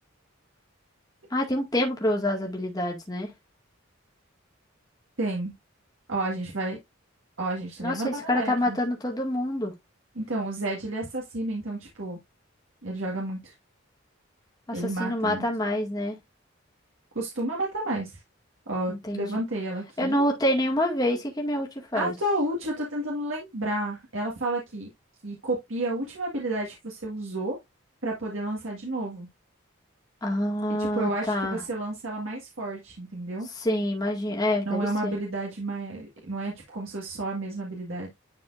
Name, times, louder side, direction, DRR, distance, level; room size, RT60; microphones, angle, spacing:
voice 1, 1.3-3.3 7.8-9.7 14.7-16.2 18.9-19.3 20.0-22.1 30.2-31.6 33.6-35.1, left 1 dB, 20° left, 2.0 m, -27 dB
voice 2, 5.2-5.5 6.1-6.8 7.4-8.8 10.2-12.2 12.8-13.5 14.7-15.5 17.2-18.1 18.7-20.2 21.9-24.9 25.2-27.6 28.0-29.3 30.8-33.5 34.6-38.1, right 1 dB, 75° right, 1.8 m, -31 dB
10.5 x 4.3 x 2.6 m
head